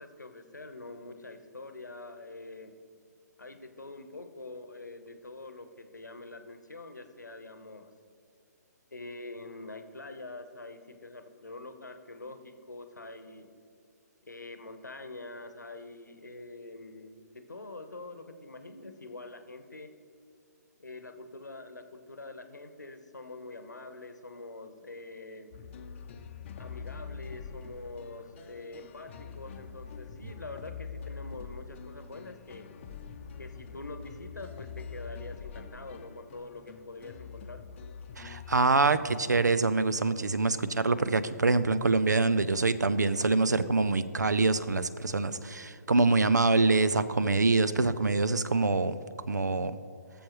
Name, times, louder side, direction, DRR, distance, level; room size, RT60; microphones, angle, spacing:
voice 1, 0.0-2.7 3.4-7.9 8.9-13.5 14.2-19.9 20.8-25.5 26.6-32.7 33.4-37.6, left 2 dB, 85° left, 8 dB, 1.0 m, -45 dB
sound 1, 25.5-38.6, left 6 dB, 40° left, 0.7 m, -44 dB
voice 2, 38.2-49.0 49.3-49.8, right 3 dB, 80° right, 14 dB, 0.6 m, -25 dB
18.5 x 7.2 x 3.1 m, 2.2 s
figure-of-eight pair, 130°, 9 cm